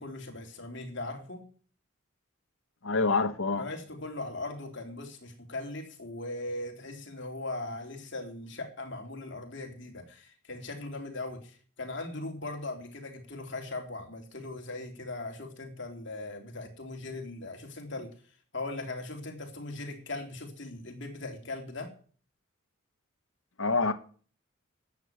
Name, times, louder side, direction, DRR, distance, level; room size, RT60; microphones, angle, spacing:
voice 1, 0.0-1.5 3.6-18.1 18.5-21.9, left 2 dB, 55° left, 3.5 m, -39 dB
voice 2, 2.8-3.7 23.6-23.9, left 3 dB, 75° left, 1.4 m, -26 dB
13.5 x 8.6 x 9.3 m
head